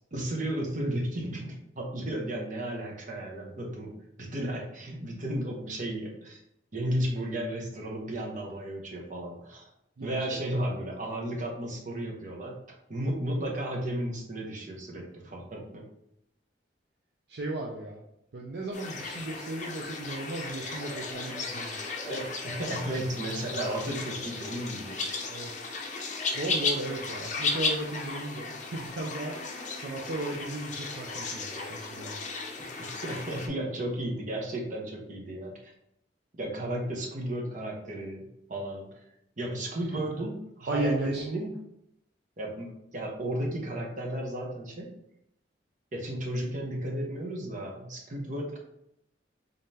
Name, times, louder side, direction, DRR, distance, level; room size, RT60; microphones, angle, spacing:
voice 1, 0.1-6.4 6.7-9.7 10.0-12.6 12.9-15.8 22.0-25.0 32.8-35.7 36.3-39.0 39.4-41.5 42.4-44.9 45.9-48.6, right 1 dB, 45° right, -1 dB, 0.9 m, -34 dB
voice 2, 10.0-10.4 17.3-18.0 18.3-21.8 24.2-24.4 25.3-25.5 26.3-32.2 39.9-40.0 40.7-41.3, right 2 dB, 65° right, 0 dB, 0.5 m, -35 dB
sound 1, 18.7-33.5, left 3 dB, 45° left, 0.6 m, -35 dB
3.8 x 3.6 x 2.8 m, 0.79 s
head